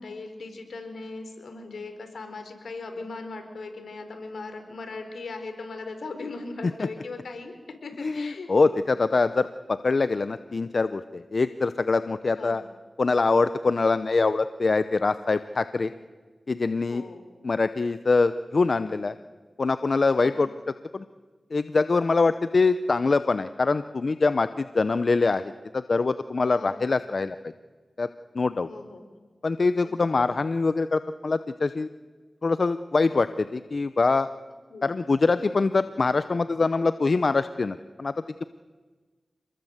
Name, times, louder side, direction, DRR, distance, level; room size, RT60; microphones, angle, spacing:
voice 1, 0.0-7.5 7.8-8.5 12.3-12.6 16.9-17.2 20.2-20.4 26.5-26.8 28.7-29.0 29.8-29.9 34.7-34.9, left 3 dB, 85° left, 6 dB, 4.4 m, -38 dB
voice 2, 8.0-12.6 13.0-15.9 16.5-17.0 17.4-19.2 19.6-20.5 20.9-21.0 21.5-27.5 28.0-28.1 28.3-28.7 29.4-31.9 32.4-34.3 34.8-38.1, left 3 dB, 60° left, 12 dB, 0.7 m, -24 dB
27.5 x 20.5 x 8.1 m, 1.4 s
cardioid pair, 50°, 0 cm